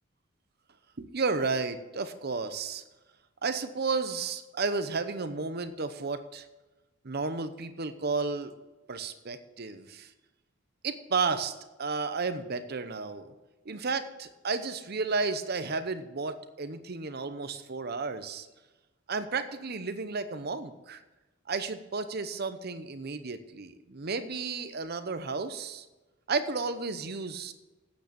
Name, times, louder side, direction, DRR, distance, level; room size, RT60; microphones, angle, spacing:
voice 1, 1.0-2.8 3.4-6.5 7.0-8.5 8.9-10.1 10.8-11.5 11.8-13.3 13.6-18.5 19.1-21.0 21.5-25.9 26.3-27.5, right 4 dB, 50° right, 11 dB, 0.8 m, -32 dB
9.0 x 8.3 x 6.9 m, 1.1 s
head